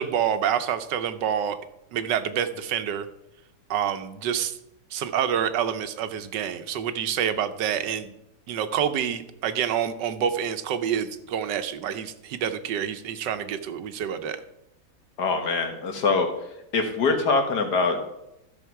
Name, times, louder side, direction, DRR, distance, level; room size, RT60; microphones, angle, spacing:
voice 1, 0.0-1.6 1.9-3.1 3.7-4.6 4.9-8.1 8.5-14.4, right 9 dB, 80° right, 10 dB, 1.4 m, -27 dB
voice 2, 15.2-16.3 16.7-18.0, left 4 dB, 70° left, 5 dB, 1.9 m, -23 dB
13.0 x 6.2 x 4.6 m, 0.84 s
omnidirectional pair, 1.9 m